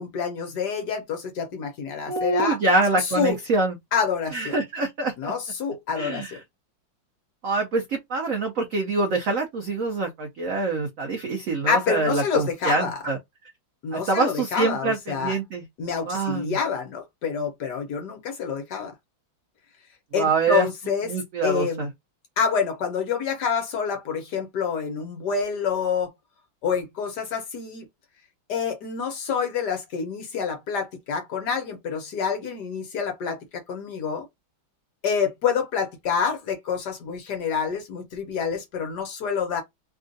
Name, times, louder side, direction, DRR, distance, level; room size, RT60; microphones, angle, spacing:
voice 1, 0.0-2.6 3.0-3.3 3.9-4.6 5.2-6.2 11.7-13.0 13.8-15.3 15.8-18.9 20.1-21.1 21.4-21.9 22.4-26.1 26.6-27.9 28.5-34.3 35.0-39.6, left 6 dB, 60° left, 1.3 m, -27 dB
voice 2, 2.1-3.8 4.3-5.3 6.0-6.4 7.4-13.2 13.9-15.6 16.1-16.6 20.1-20.7 21.0-21.9, right 3 dB, 80° right, 0.7 m, -25 dB
3.5 x 2.4 x 2.6 m
omnidirectional pair, 2.3 m